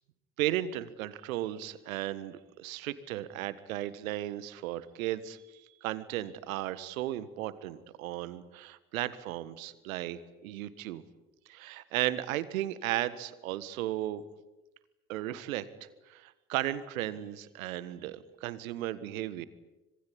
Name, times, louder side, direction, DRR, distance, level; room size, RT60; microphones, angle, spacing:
voice 1, 0.4-11.0 11.5-14.2 15.1-15.6 16.1-19.4, right 14 dB, 75° right, 15 dB, 1.6 m, -35 dB
26.0 x 21.0 x 10.0 m, 1.1 s
figure-of-eight pair, 55°, 42 cm